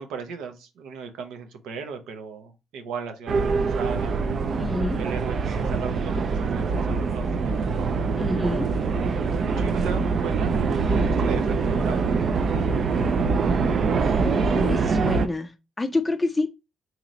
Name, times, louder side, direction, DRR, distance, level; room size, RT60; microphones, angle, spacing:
voice 1, 0.0-4.2 5.0-7.9 9.6-10.6 10.9-12.1 14.3-14.7, right 5 dB, 90° right, 0.7 m, -37 dB
sound 1, 3.3-15.3, right 4 dB, 55° right, 0.4 m, -24 dB
voice 2, 4.6-5.0 8.1-8.7 14.2-16.5, left 2 dB, 15° left, 0.4 m, -27 dB
3.8 x 2.9 x 3.0 m
cardioid pair, 90°, 0 cm